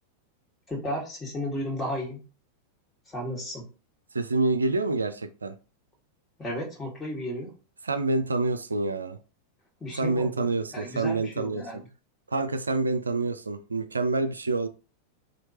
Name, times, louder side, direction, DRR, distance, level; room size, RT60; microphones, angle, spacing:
voice 1, 0.7-2.2 3.1-3.7 6.4-7.5 9.8-11.8, left 1 dB, 15° left, 1.7 m, -34 dB
voice 2, 4.1-5.6 7.8-9.2 10.0-11.8 12.3-14.7, right 3 dB, 75° right, 0.4 m, -27 dB
4.3 x 2.7 x 2.9 m
figure-of-eight pair, 90°, 0 cm